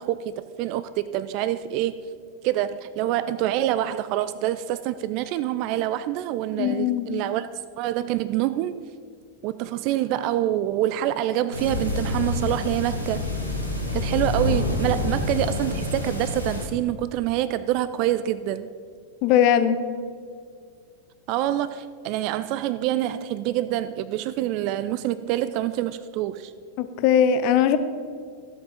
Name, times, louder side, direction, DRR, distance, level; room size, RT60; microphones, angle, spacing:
voice 1, 0.0-2.0 2.4-7.5 7.8-8.8 9.4-13.2 13.9-18.7 21.3-26.5, right 13 dB, 45° right, 13 dB, 0.3 m, -26 dB
voice 2, 6.6-7.1 19.2-19.8 26.8-27.8, left 9 dB, 45° left, 11 dB, 0.7 m, -20 dB
sound 1, 11.5-16.7, left 2 dB, 90° right, 2.0 m, -27 dB
13.5 x 7.5 x 5.1 m, 2.1 s
figure-of-eight pair, 90°, 0 cm